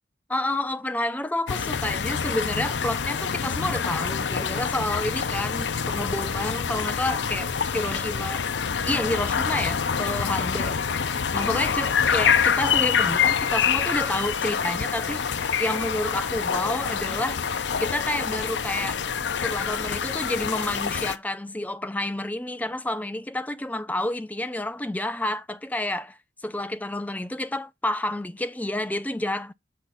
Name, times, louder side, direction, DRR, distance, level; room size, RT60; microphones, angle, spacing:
voice 1, 0.3-8.5 8.8-10.9 11.3-17.4 17.8-19.0 19.3-26.2 26.4-29.5, left 1 dB, 10° left, 0.5 m, -29 dB
sound 1, 1.5-21.2, left 6 dB, 85° left, 0.6 m, -26 dB
7.3 x 4.2 x 5.3 m
head